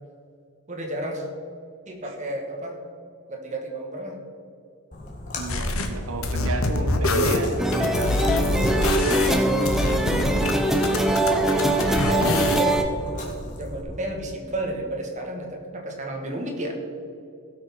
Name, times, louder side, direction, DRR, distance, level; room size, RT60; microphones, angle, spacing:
voice 1, 0.7-1.3 1.8-2.8 3.3-4.2 6.6-7.8 11.8-12.8 13.6-16.7, right 1 dB, 35° right, 1 dB, 1.6 m, -32 dB
Splash splatter, 4.9-13.8, left 1 dB, 35° left, 1.8 m, -37 dB
voice 2, 5.4-8.6, right 3 dB, 70° right, 6 dB, 0.8 m, -33 dB
sound 1, 5.5-5.9 6.2-10.5 10.8-12.8, left 2 dB, 70° left, 1.1 m, -25 dB
sound 2, 7.6-12.8, right 1 dB, ahead, 0.7 m, -22 dB
16.5 x 6.1 x 5.8 m, 2.6 s
head